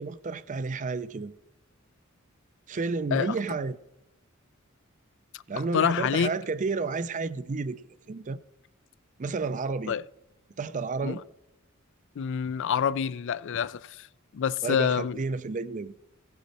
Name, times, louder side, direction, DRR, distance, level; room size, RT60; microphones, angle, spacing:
voice 1, 0.0-1.3 2.7-3.8 5.5-8.4 9.2-10.0 10.5-11.2 14.6-15.9, right 4 dB, 35° right, 0.4 m, -31 dB
voice 2, 5.7-6.3 9.9-10.0 11.0-11.2 12.2-14.1 14.3-15.2, left 7 dB, 60° left, 0.4 m, -27 dB
16.0 x 8.3 x 4.2 m
head